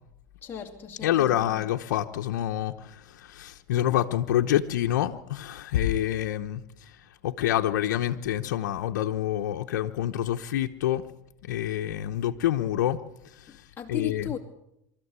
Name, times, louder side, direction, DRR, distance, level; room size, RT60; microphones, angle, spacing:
voice 1, 0.4-1.4 13.5-14.4, left 9 dB, 20° left, 2.4 m, -36 dB
voice 2, 1.0-11.0 11.4-13.0 13.2-14.4, left 12 dB, 85° left, 1.0 m, -27 dB
24.0 x 13.5 x 8.2 m
supercardioid pair, 115°, 10 cm